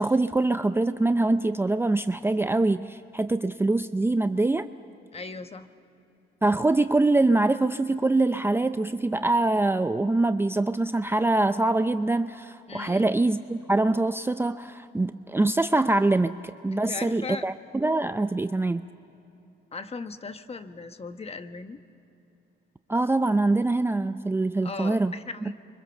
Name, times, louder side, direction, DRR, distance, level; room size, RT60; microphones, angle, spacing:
voice 1, 0.0-4.7 6.4-18.9 22.9-25.1 25.4-25.5, right 2 dB, 10° right, 10 dB, 0.5 m, -24 dB
voice 2, 5.1-5.7 12.7-13.1 16.7-17.5 19.7-21.8 24.6-25.5, left 4 dB, 30° left, 9 dB, 1.2 m, -38 dB
29.5 x 24.5 x 7.1 m, 2.9 s
cardioid pair, 90°, 20 cm